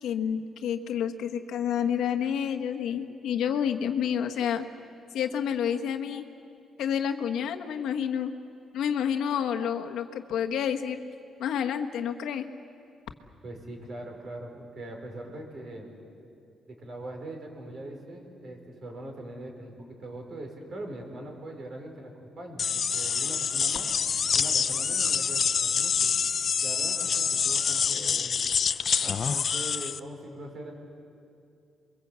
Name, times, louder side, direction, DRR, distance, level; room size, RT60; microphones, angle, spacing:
voice 1, 0.0-4.6 5.1-6.2 6.8-8.3 8.7-11.0 11.4-12.5, left 8 dB, 80° left, 5 dB, 1.3 m, -29 dB
voice 2, 13.4-15.9 16.7-22.1 22.4-22.7 22.9-23.9 24.3-26.1 26.6-28.3 29.0-30.7, right 1 dB, 45° right, 2 dB, 5.1 m, -41 dB
sound 1, 22.6-30.0, left 6 dB, 40° left, 0.5 m, -26 dB
29.0 x 23.0 x 8.2 m, 2.5 s
cardioid pair, 150°, 0 cm